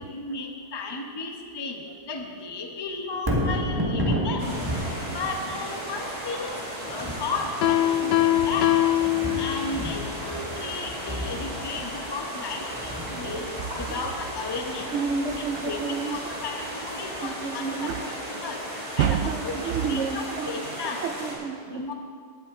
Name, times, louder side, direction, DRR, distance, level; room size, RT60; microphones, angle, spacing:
voice 1, 0.0-4.5 5.1-6.6 6.8-8.7 9.4-13.5 13.8-14.9 15.4-18.0 18.3-18.6 19.0-21.0 21.7-21.9, left 3 dB, 20° left, 3 dB, 0.7 m, -34 dB
Thunder, 3.1-17.4 17.8-17.9, equal, 15° right, 1.3 m, -33 dB
sound 1, 4.4-21.3, equal, 40° right, 3.5 m, -35 dB
Piano, 7.6-9.9, left 14 dB, 85° left, 1.3 m, -22 dB
voice 2, 13.2-13.7 14.9-16.2 17.2-18.0 19.0-20.6 21.0-21.8, right 6 dB, 85° right, 7 dB, 0.6 m, -29 dB
19.0 x 8.6 x 3.7 m, 2.1 s
omnidirectional pair, 1.8 m